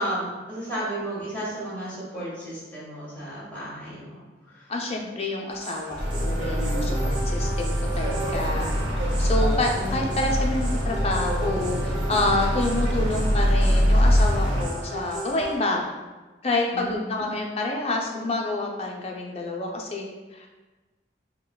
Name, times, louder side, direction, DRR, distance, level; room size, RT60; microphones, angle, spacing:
voice 1, 0.0-4.7 16.7-17.2, right 1 dB, 10° left, -8 dB, 1.3 m, -33 dB
voice 2, 4.7-8.7 9.2-15.9 16.4-20.5, left 2 dB, 35° left, 0 dB, 0.5 m, -28 dB
sound 1, 5.5-15.6, right 2 dB, 45° right, 0.6 m, -38 dB
sound 2, 6.0-14.6, equal, 75° right, 0.8 m, -23 dB
5.5 x 2.2 x 2.3 m, 1.2 s
head